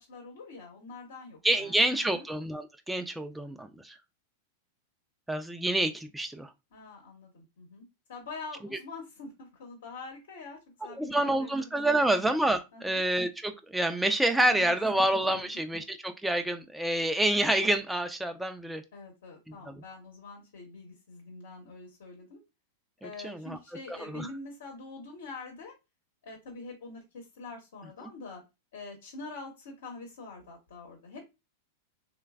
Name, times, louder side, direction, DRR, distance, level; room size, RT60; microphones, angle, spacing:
voice 1, 0.0-2.2 6.7-12.2 12.7-13.0 14.4-15.0 15.3-15.6 18.9-22.4 23.0-25.7 26.2-28.4 28.7-31.3, left 3 dB, 75° left, 1 dB, 0.9 m, -45 dB
voice 2, 1.4-4.0 5.3-6.5 11.0-18.8 19.7-19.8 23.0-23.6 23.9-24.3, right 1 dB, 5° right, 6 dB, 0.3 m, -28 dB
3.1 x 2.1 x 2.3 m, 0.24 s
hypercardioid pair, 110°, 0 cm